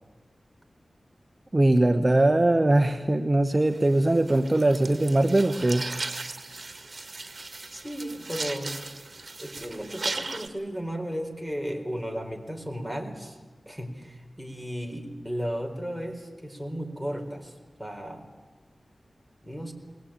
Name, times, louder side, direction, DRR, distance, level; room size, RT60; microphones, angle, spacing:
voice 1, 1.5-5.9, right 1 dB, 30° right, 7 dB, 1.1 m, -21 dB
sound 1, 3.7-10.5, right 3 dB, 50° right, 1.8 m, -37 dB
voice 2, 7.7-8.8 9.4-13.4 13.7-18.3 19.4-19.7, equal, 5° left, 4 dB, 4.2 m, -35 dB
21.0 x 19.5 x 8.9 m, 1.3 s
cardioid pair, 55°, 0 cm